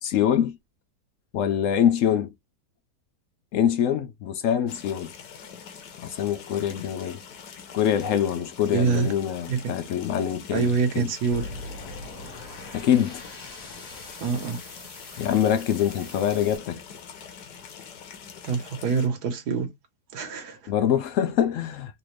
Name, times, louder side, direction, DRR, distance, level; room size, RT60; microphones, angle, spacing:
voice 1, 0.0-0.6 1.3-2.3 3.5-5.1 6.0-7.2 7.7-11.1 12.7-13.2 15.2-16.8 20.7-22.0, left 9 dB, 75° left, 0.7 m, -24 dB
sound 1, 4.7-19.1, left 7 dB, 90° left, 1.5 m, -44 dB
voice 2, 8.7-9.1 9.5-9.7 10.5-11.5 14.2-14.6 18.4-19.7 20.1-20.7, right 5 dB, 75° right, 1.6 m, -25 dB
sound 2, 11.3-16.6, left 2 dB, 30° left, 1.8 m, -42 dB
4.0 x 2.6 x 3.1 m
omnidirectional pair, 1.8 m